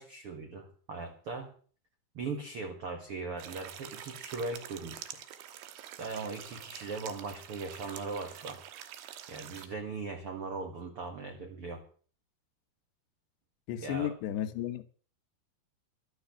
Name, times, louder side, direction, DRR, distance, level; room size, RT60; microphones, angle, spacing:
voice 1, 0.0-1.5 2.1-5.2 6.0-8.6 9.3-11.8 13.8-14.1, right 4 dB, 55° right, 1.6 m, -39 dB
sound 1, 3.4-9.7, right 11 dB, 70° right, 3.1 m, -46 dB
voice 2, 13.7-14.8, left 11 dB, 80° left, 3.3 m, -33 dB
12.5 x 12.5 x 6.9 m
omnidirectional pair, 5.0 m